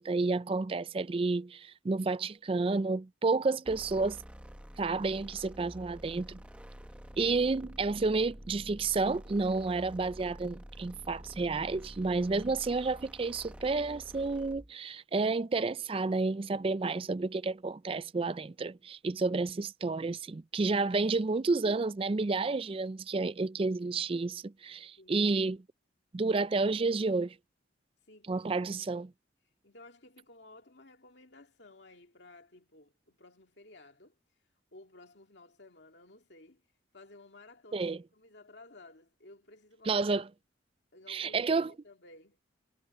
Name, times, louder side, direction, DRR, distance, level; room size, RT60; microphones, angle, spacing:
voice 1, 0.0-4.2 4.8-6.4 7.2-25.6 26.1-27.3 28.3-29.1 37.7-38.0 39.9-40.3 41.1-41.7, right 3 dB, 30° right, 0.4 m, -30 dB
sound 1, 3.7-14.7, equal, 5° right, 0.9 m, -48 dB
voice 2, 25.0-25.3 28.1-28.6 29.0-29.1 29.6-34.2 34.7-36.6 36.9-40.1 40.9-42.4, left 2 dB, 65° left, 2.5 m, -55 dB
head